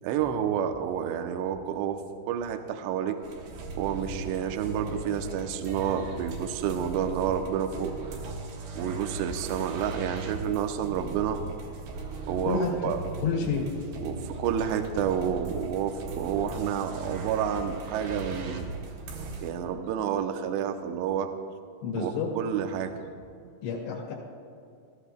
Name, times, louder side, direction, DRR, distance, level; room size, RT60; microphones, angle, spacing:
voice 1, 0.0-2.0 2.3-3.2 3.8-7.9 8.8-11.4 12.3-13.0 14.0-18.7 19.4-21.3 22.0-23.0, right 8 dB, 90° right, 6 dB, 2.5 m, -29 dB
sound 1, 3.2-19.5, right 3 dB, 70° right, 2.5 m, -38 dB
voice 2, 12.4-12.9 13.2-13.7 21.8-22.3 23.6-24.1, left 5 dB, 80° left, -4 dB, 4.2 m, -29 dB
20.0 x 14.0 x 2.2 m, 2.3 s
omnidirectional pair, 5.6 m